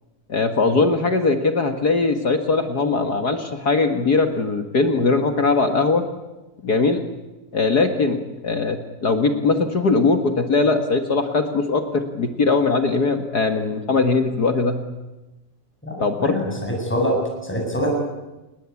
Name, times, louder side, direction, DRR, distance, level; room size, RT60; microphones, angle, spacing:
voice 1, 0.3-6.0 6.6-7.0 7.5-14.8 16.0-16.4, left 3 dB, 40° left, 7 dB, 1.4 m, -20 dB
voice 2, 16.2-17.2 17.4-17.9, equal, 5° left, 0 dB, 7.3 m, -24 dB
28.5 x 20.5 x 8.5 m, 1.0 s
omnidirectional pair, 3.8 m